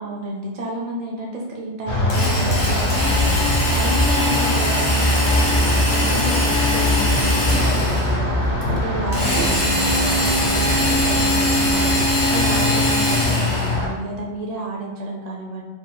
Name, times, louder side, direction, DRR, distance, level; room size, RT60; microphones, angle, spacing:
voice 1, 0.0-15.6, right 2 dB, 50° right, -2 dB, 0.5 m, -31 dB
sound 1, 1.9-13.9, left 1 dB, 70° left, 1.1 m, -22 dB
Drill, 2.1-8.2 9.1-13.8, left 1 dB, 45° left, 1.5 m, -22 dB
sound 2, 8.1-13.4, right 2 dB, 80° right, 1.2 m, -34 dB
4.6 x 4.0 x 2.2 m, 1.4 s
omnidirectional pair, 1.2 m